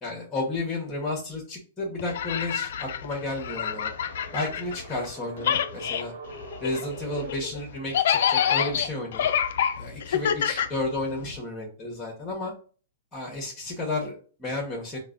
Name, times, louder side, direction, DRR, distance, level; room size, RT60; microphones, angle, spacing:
voice 1, 0.0-3.9 4.3-6.1 6.6-9.3 9.8-12.5 13.1-15.0, left 2 dB, 10° left, -1 dB, 0.9 m, -32 dB
sound 1, 2.0-5.1 5.4-11.4, left 9 dB, 70° left, 0.3 m, -27 dB
sound 2, 3.4-7.3, right 2 dB, 55° right, 0.9 m, -43 dB
4.7 x 2.1 x 2.4 m, 0.40 s
hypercardioid pair, 150°, 0 cm